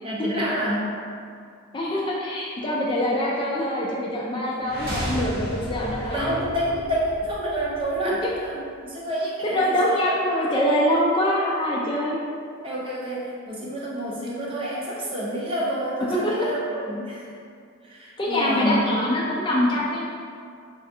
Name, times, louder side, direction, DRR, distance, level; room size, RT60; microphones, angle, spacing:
voice 1, 0.0-0.9 6.0-10.0 10.4-10.5 12.6-17.2 17.8-19.0, equal, 25° right, -6 dB, 0.6 m, -28 dB
voice 2, 1.7-6.4 8.0-8.1 9.4-12.2 16.1-16.3 18.2-20.1, equal, 25° left, -5 dB, 0.3 m, -24 dB
sound 1, 4.6-8.6, equal, 45° right, 1.0 m, -33 dB
4.2 x 2.4 x 2.7 m, 2.3 s
head